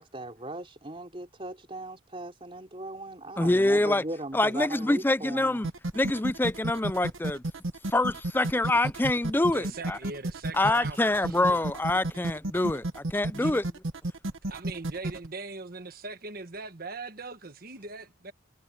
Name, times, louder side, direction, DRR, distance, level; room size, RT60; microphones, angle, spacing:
voice 1, 0.0-5.6, right 2 dB, 30° right, 4.0 m, -38 dB
voice 2, 3.4-4.0 4.3-5.7 5.9-7.4 7.9-10.0 10.5-13.6, left 2 dB, 10° left, 0.4 m, -25 dB
sound 1, 5.6-15.3, right 2 dB, 85° right, 1.1 m, -32 dB
voice 3, 9.4-11.7 13.3-13.6 14.5-18.3, right 3 dB, 50° right, 1.4 m, -41 dB
head